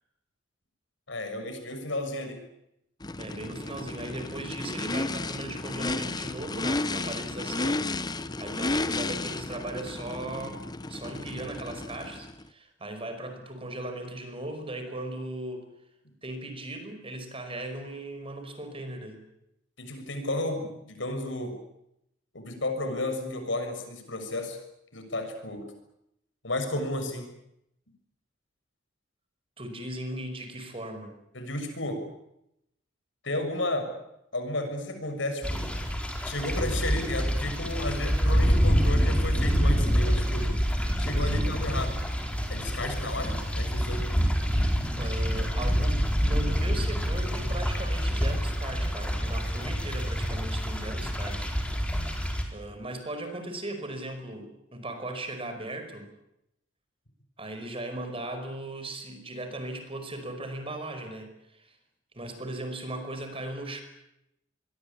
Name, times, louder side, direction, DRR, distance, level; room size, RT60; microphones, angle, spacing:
voice 1, 1.1-2.4 19.8-21.5 22.3-24.6 24.9-25.7 26.4-27.3 31.3-32.0 33.2-33.9 34.3-35.6 36.2-40.5 41.0-42.0 42.5-44.1, left 1 dB, 75° left, 7 dB, 6.5 m, -32 dB
Race car auto racing / Idling / Accelerating revving vroom, 3.0-12.4, left 2 dB, 20° left, 1.0 m, -33 dB
voice 2, 3.2-7.8 8.4-10.6 10.9-15.7 16.2-19.2 29.6-31.1 41.2-41.5 44.9-51.6 52.5-56.1 57.4-61.8 62.1-63.8, right 1 dB, 30° right, 7 dB, 5.2 m, -38 dB
sound 1, 35.4-52.4, equal, 5° left, 4.3 m, -27 dB
26.0 x 22.5 x 8.7 m, 0.81 s
head